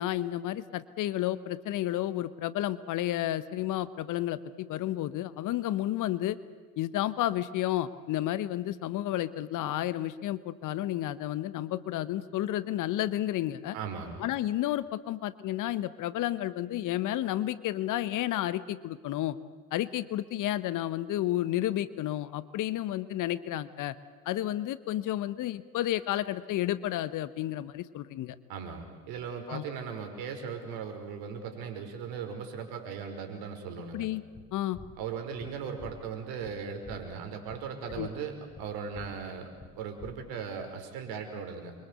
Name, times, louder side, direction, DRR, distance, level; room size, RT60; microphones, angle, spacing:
voice 1, 0.0-6.4 6.8-13.8 14.2-19.4 19.7-23.9 24.2-28.4 29.5-29.6 33.9-34.2 34.5-34.8 37.9-38.1, left 13 dB, 45° left, 16 dB, 1.2 m, -31 dB
voice 2, 13.7-14.2 28.5-34.1 35.0-39.5 39.7-41.7, right 6 dB, 60° right, 6 dB, 5.3 m, -38 dB
sound 1, 34.3-40.6, left 2 dB, 15° left, 2.5 m, -51 dB
29.0 x 24.0 x 8.3 m, 1.5 s
hypercardioid pair, 75°, 42 cm